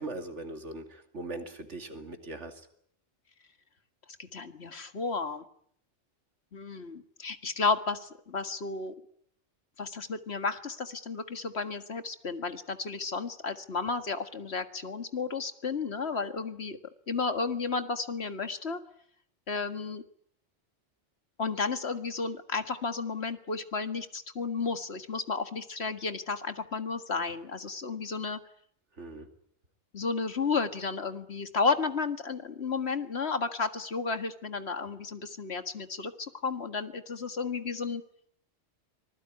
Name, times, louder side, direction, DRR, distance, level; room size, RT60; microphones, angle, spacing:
voice 1, 0.0-2.6 29.0-29.3, right 2 dB, 80° right, 6 dB, 2.9 m, -40 dB
voice 2, 4.2-5.4 6.5-8.9 9.8-16.8 17.1-18.8 19.5-20.0 21.4-28.4 29.9-38.0, left 4 dB, 60° left, 9 dB, 2.0 m, -32 dB
25.0 x 20.5 x 9.7 m, 0.68 s
omnidirectional pair, 1.2 m